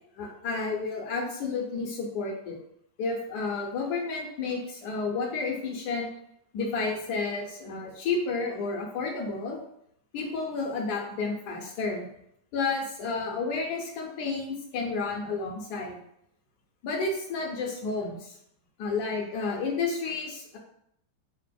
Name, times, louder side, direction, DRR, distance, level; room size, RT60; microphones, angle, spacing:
voice 1, 0.1-2.6 3.0-6.1 6.5-9.6 10.1-12.1 12.5-16.0 16.8-18.3 18.8-20.6, left 4 dB, 80° left, 0 dB, 1.1 m, -31 dB
3.2 x 2.0 x 2.2 m, 0.72 s
omnidirectional pair, 1.8 m